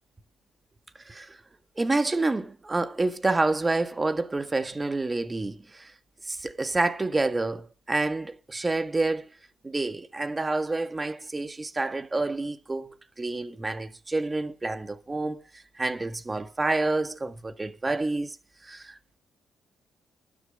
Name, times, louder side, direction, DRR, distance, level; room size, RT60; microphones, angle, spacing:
voice 1, 1.1-1.4 1.8-5.9 6.2-9.3 9.6-15.4 15.8-18.4 18.6-19.2, right 2 dB, 20° right, 1.6 m, -28 dB
12.5 x 10.5 x 5.4 m
cardioid pair, 90°, 0 cm